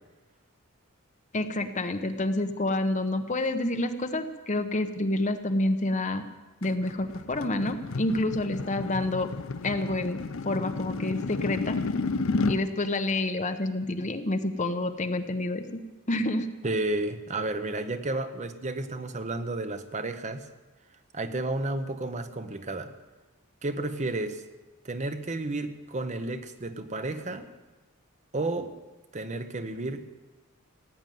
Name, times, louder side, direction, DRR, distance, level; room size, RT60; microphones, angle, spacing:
voice 1, 1.3-6.2 6.6-9.3 9.6-11.8 12.5-15.8 16.1-16.5, left 2 dB, 35° left, 8 dB, 0.9 m, -28 dB
sound 1, 6.6-12.6, left 3 dB, 65° left, 0.6 m, -32 dB
voice 2, 16.6-20.5 21.1-22.9 23.6-24.4 24.8-27.5 28.3-28.7 29.1-30.1, right 2 dB, 35° right, 9 dB, 0.8 m, -32 dB
16.5 x 9.1 x 9.2 m, 1.2 s
head